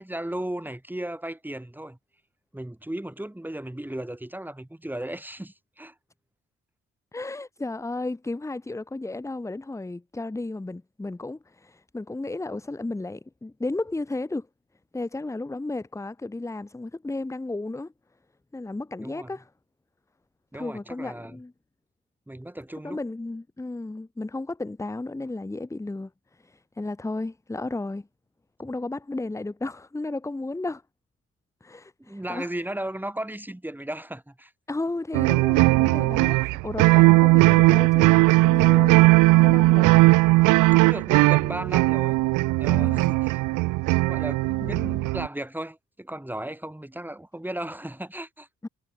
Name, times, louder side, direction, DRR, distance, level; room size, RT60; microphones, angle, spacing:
voice 1, 0.0-2.0 2.5-5.9 19.0-19.3 20.5-21.4 22.3-23.0 32.0-34.5 40.8-42.2 42.6-43.4 44.0-48.5, right 1 dB, 5° right, 4.1 m, -35 dB
voice 2, 7.1-14.5 14.9-17.9 18.5-19.5 20.5-21.5 22.8-28.1 28.6-30.8 31.6-32.5 34.7-39.9 42.7-43.2 44.6-45.1 48.6-48.7, left 2 dB, 10° left, 0.8 m, -33 dB
sound 1, 35.1-45.3, right 21 dB, 90° right, 0.5 m, -18 dB
cardioid pair, 90°, 30 cm